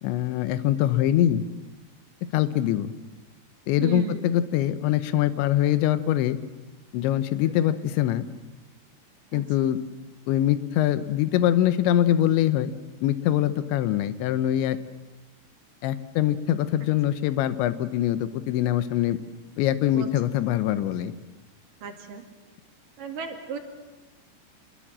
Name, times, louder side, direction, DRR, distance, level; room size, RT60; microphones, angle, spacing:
voice 1, 0.0-1.4 2.3-2.9 3.7-6.4 6.9-8.3 9.3-9.8 10.3-12.7 13.0-14.8 15.8-19.2 19.6-21.1, left 12 dB, 90° left, 12 dB, 3.3 m, -23 dB
voice 2, 3.8-4.2 9.3-9.4 20.0-20.1 21.8-22.2 23.0-23.6, right 7 dB, 55° right, 4 dB, 3.4 m, -34 dB
26.0 x 21.5 x 7.5 m, 1.2 s
omnidirectional pair, 5.1 m